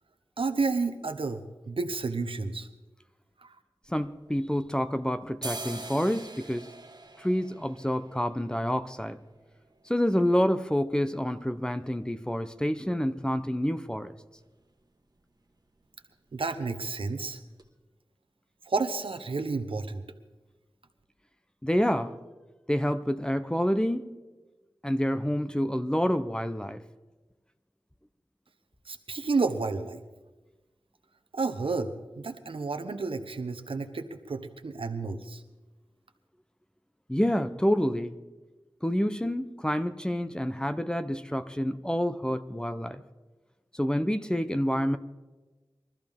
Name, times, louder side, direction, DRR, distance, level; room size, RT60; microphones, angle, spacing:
voice 1, 0.4-2.7 3.4-3.6 16.3-17.4 18.7-20.0 28.9-30.0 31.3-35.4, right 4 dB, 85° right, 8 dB, 1.0 m, -31 dB
sound 1, 3.8-4.9 5.2-13.0 13.3-13.4 13.6-14.2 14.5-14.7 15.0-15.2 15.5-16.2 16.6-16.7 17.2-17.3 17.6-17.7, right 2 dB, 50° right, 1.4 m, -45 dB
voice 2, 3.9-6.7 7.2-9.2 9.9-14.1 21.6-22.1 22.7-24.1 24.8-26.8 37.1-38.1 38.8-43.0 43.7-45.0, equal, 10° left, 11 dB, 0.7 m, -28 dB
22.5 x 13.5 x 3.6 m, 1.2 s
wide cardioid pair, 65°, 9 cm